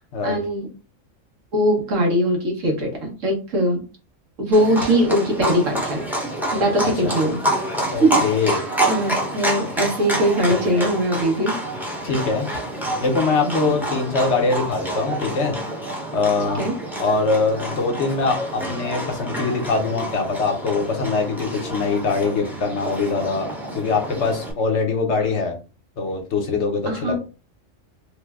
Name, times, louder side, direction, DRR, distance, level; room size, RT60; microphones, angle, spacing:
voice 1, 0.2-0.7 1.5-3.8 4.4-6.0 6.5-7.4 8.0-11.5 13.4-13.7 16.6-16.7 26.9-27.2, equal, 75° right, 1 dB, 1.4 m, -21 dB
Livestock farm animals working animals, 4.5-24.5, right 1 dB, ahead, 0.6 m, -28 dB
voice 2, 6.8-7.1 7.9-8.6 12.0-12.5 13.0-15.6 16.1-16.6 17.0-23.5 23.7-25.6 26.0-27.2, left 4 dB, 65° left, 4 dB, 1.0 m, -23 dB
3.2 x 2.1 x 3.4 m, 0.34 s
omnidirectional pair, 1.3 m